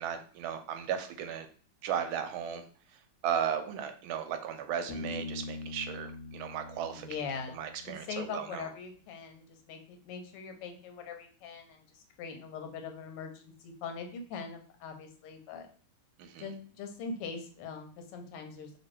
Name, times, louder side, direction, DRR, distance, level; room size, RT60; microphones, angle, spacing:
voice 1, 0.0-1.5 1.8-2.6 3.2-7.1 7.5-8.7 16.2-16.5, right 8 dB, 75° right, 7 dB, 1.3 m, -35 dB
Bass guitar, 4.9-8.4, left 2 dB, 70° left, 1.6 m, -43 dB
voice 2, 7.0-15.7 16.4-18.7, left 5 dB, 85° left, 5 dB, 1.7 m, -42 dB
3.2 x 3.1 x 4.4 m, 0.43 s
omnidirectional pair, 2.4 m